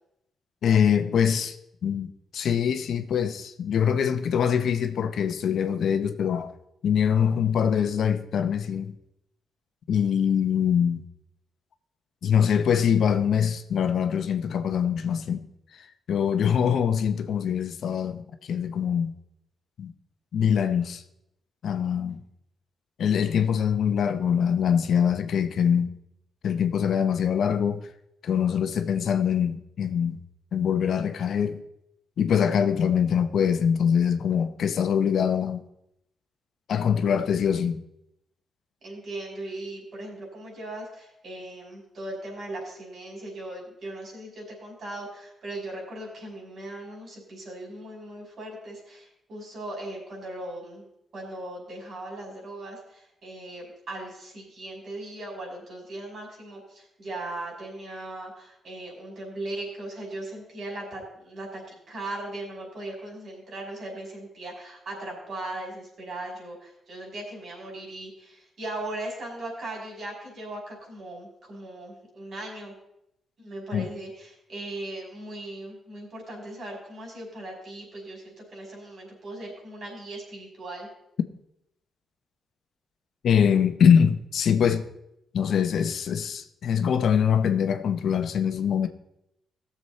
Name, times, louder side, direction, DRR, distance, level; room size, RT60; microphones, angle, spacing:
voice 1, 0.6-1.6 1.8-6.5 6.8-8.9 9.9-11.0 12.2-15.5 15.7-15.8 16.1-19.1 19.8-19.9 20.3-21.0 21.6-22.2 23.0-25.9 26.4-27.9 28.2-30.2 30.5-31.6 32.2-35.6 36.7-37.8 73.7-73.9 83.2-84.9 85.3-88.9, left 8 dB, 70° left, 0.9 m, -23 dB
voice 2, 38.8-50.9 51.1-72.7 73.4-80.9, right 1 dB, 60° right, 5.4 m, -38 dB
17.5 x 7.2 x 4.2 m
cardioid pair, 100°, 0 cm